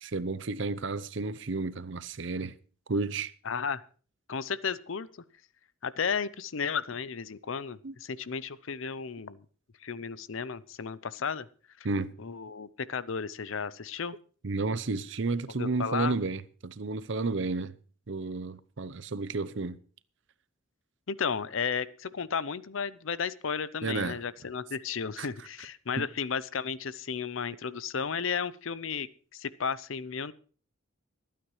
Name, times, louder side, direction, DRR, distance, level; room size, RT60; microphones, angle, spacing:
voice 1, 0.0-2.5 2.9-3.3 7.8-7.9 11.8-12.1 14.4-17.8 18.1-19.8 23.8-24.2 25.2-25.3 26.0-26.1, right 3 dB, 60° right, 0.7 m, -32 dB
voice 2, 3.5-3.8 4.3-5.1 5.8-9.5 9.8-11.5 11.8-11.9 12.2-14.2 15.6-16.2 21.1-30.3, left 6 dB, 70° left, 0.6 m, -33 dB
25.0 x 9.2 x 3.2 m
head